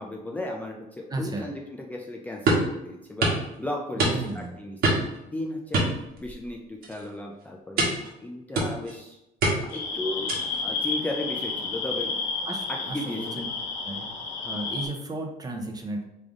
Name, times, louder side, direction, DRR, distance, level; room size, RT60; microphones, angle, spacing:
voice 1, 0.0-3.3 3.6-5.1 5.3-5.9 6.2-7.9 8.2-9.2 9.7-12.1 12.7-13.4, left 1 dB, 10° left, -1 dB, 0.5 m, -35 dB
voice 2, 1.1-1.5 4.0-4.5 12.5-13.4 13.8-14.1 14.4-16.0, right 2 dB, 20° right, 2 dB, 0.8 m, -34 dB
sound 1, 2.5-2.7 3.2-3.4 4.0-4.4 4.8-5.2 5.7-6.5 6.8-7.1 7.8-8.1 8.5-8.9 9.4-9.8 10.3-10.6, right 2 dB, 65° right, 1.4 m, -24 dB
sound 2, 9.7-14.9, left 4 dB, 90° left, 1.1 m, -31 dB
3.8 x 3.4 x 3.7 m, 0.89 s
cardioid pair, 110°, 17 cm